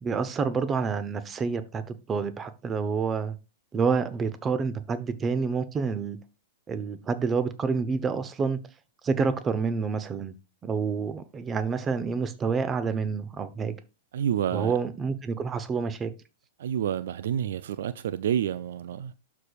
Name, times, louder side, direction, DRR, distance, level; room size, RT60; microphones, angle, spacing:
voice 1, 0.0-3.4 3.7-6.2 6.7-8.6 9.0-10.3 10.6-13.8 14.5-16.1, right 5 dB, 25° right, 0.9 m, -28 dB
voice 2, 14.1-14.7 16.6-19.1, right 9 dB, 70° right, 0.4 m, -29 dB
12.5 x 4.8 x 2.4 m
hypercardioid pair, 105°, 0 cm